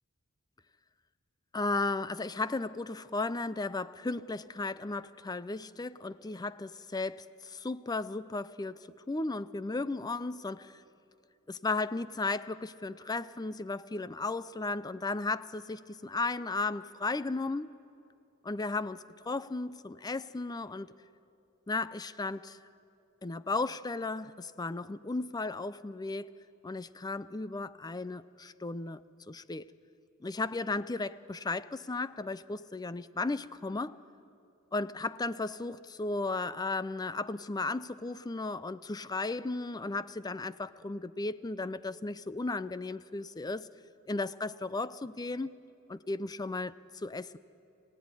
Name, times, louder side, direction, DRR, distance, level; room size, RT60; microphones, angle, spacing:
voice 1, 1.5-10.8 11.5-17.7 18.4-20.9 21.7-22.6 23.2-26.3 26.6-29.7 30.2-34.0 34.7-43.7 44.1-45.5 45.9-47.4, left 3 dB, 20° left, 16 dB, 0.5 m, -35 dB
26.0 x 16.5 x 9.7 m, 2.7 s
head